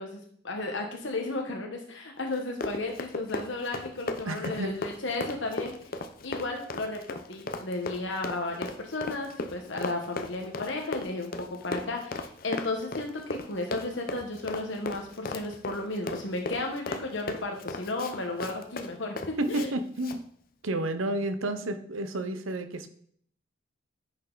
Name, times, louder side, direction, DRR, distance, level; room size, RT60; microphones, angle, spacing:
voice 1, 0.0-5.7 6.2-11.3 11.6-19.1 19.5-19.7, left 2 dB, 65° left, 2 dB, 1.3 m, -34 dB
Run, 2.3-19.7 20.0-20.2, left 2 dB, 45° left, 0.8 m, -36 dB
voice 2, 4.3-4.7 19.4-20.3 20.6-22.9, right 1 dB, 90° right, 10 dB, 0.9 m, -31 dB
10.0 x 6.5 x 4.0 m, 0.62 s
head